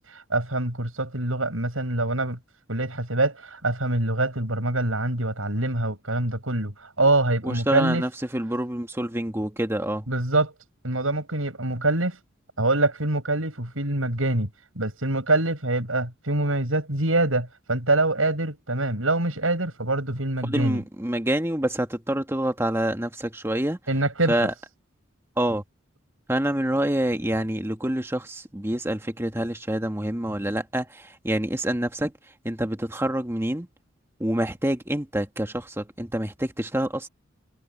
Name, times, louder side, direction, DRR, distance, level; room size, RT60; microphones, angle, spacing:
voice 1, 0.0-2.4 2.7-8.0 10.1-10.5 10.8-12.2 12.6-14.5 14.7-20.8 23.9-24.5, right 2 dB, 85° right, 7.8 m, -25 dB
voice 2, 7.4-10.1 20.4-23.8 24.3-24.5 25.4-25.6 26.3-32.1 32.4-33.7 34.2-37.1, right 1 dB, 10° right, 1.4 m, -27 dB
head